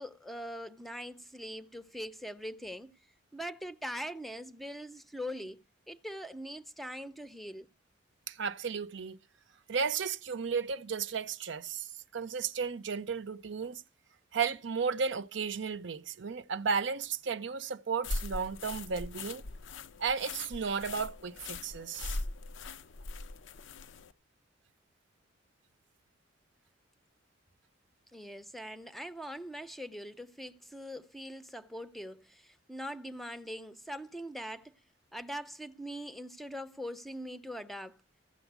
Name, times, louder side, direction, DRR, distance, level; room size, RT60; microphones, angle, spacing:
voice 1, 0.0-2.9 3.3-7.7 28.1-34.7 35.1-38.0, equal, ahead, 0.6 m, -42 dB
voice 2, 8.3-9.2 9.7-13.8 14.3-19.4 20.0-22.2, right 5 dB, 70° right, 0.6 m, -34 dB
sound 1, 18.0-24.1, left 2 dB, 75° left, 0.6 m, -40 dB
15.0 x 7.1 x 8.0 m
head